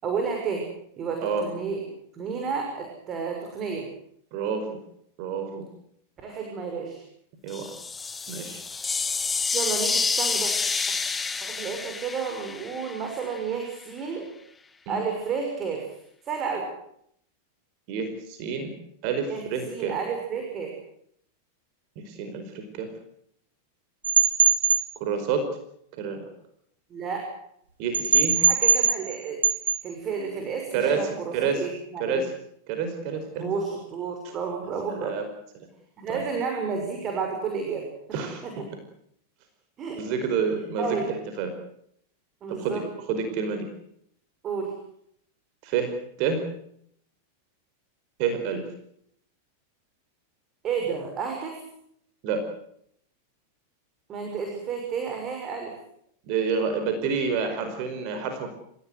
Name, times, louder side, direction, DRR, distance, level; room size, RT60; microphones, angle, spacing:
voice 1, 0.0-0.6 1.0-1.8 2.1-3.9 6.2-7.0 9.5-10.5 11.5-14.3 14.9-15.9 16.3-16.7 19.3-20.7 26.9-27.3 28.4-29.4 29.8-32.2 33.4-35.1 36.0-37.9 38.4-38.5 39.8-40.0 40.8-41.1 42.4-42.8 44.4-44.7 50.6-51.6 54.1-55.7, right 5 dB, 35° right, 3 dB, 6.4 m, -31 dB
voice 2, 4.3-4.8 5.2-5.6 7.4-7.7 8.3-8.6 14.9-15.0 17.9-18.7 19.0-20.0 22.0-22.9 25.0-25.4 26.0-26.2 27.8-28.4 30.7-31.7 32.0-32.3 32.7-33.5 34.9-35.2 36.1-36.2 38.1-38.4 40.0-41.0 41.4-41.5 42.5-43.7 45.6-45.9 46.2-46.4 48.2-48.6 52.2-52.4 56.2-58.5, right 6 dB, 50° right, 7 dB, 4.9 m, -28 dB
sound 1, 7.5-13.4, left 4 dB, 15° left, 1.9 m, -29 dB
sound 2, 24.0-24.8 27.9-29.2 29.4-29.8, right 6 dB, 80° right, 3.4 m, -20 dB
28.5 x 16.5 x 8.0 m, 0.71 s
hypercardioid pair, 95°, 0 cm